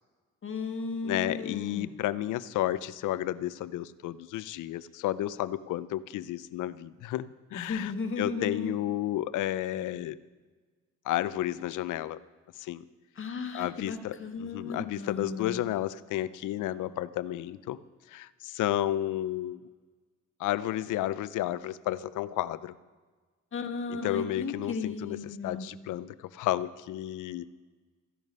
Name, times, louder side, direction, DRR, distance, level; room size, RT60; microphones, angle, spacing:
voice 1, 0.4-1.9 7.5-8.8 13.2-15.6 23.5-25.7, left 4 dB, 40° left, 4 dB, 1.8 m, -35 dB
voice 2, 1.0-7.9 8.2-10.2 11.1-12.2 12.6-12.9 13.5-17.8 18.1-19.6 20.4-22.7 23.9-25.2 25.4-27.5, left 13 dB, 85° left, 16 dB, 0.6 m, -32 dB
14.5 x 11.0 x 5.4 m, 1.4 s
cardioid pair, 90°, 30 cm